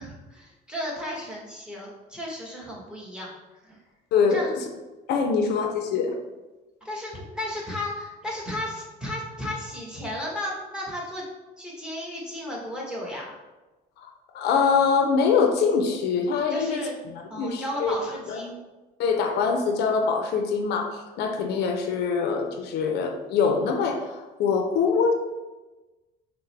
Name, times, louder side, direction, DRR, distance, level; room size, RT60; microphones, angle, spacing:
voice 1, 0.0-3.3 3.6-3.8 4.3-4.5 5.2-5.5 6.8-11.2 11.6-13.2 16.5-16.9 17.3-18.6, left 1 dB, 5° right, -4 dB, 1.2 m, -34 dB
voice 2, 4.1-4.5 5.1-6.1 14.3-17.9 18.3-18.4 19.0-25.1, left 5 dB, 75° left, 4 dB, 0.5 m, -24 dB
5.6 x 2.1 x 3.2 m, 1.2 s
cardioid pair, 110°, 17 cm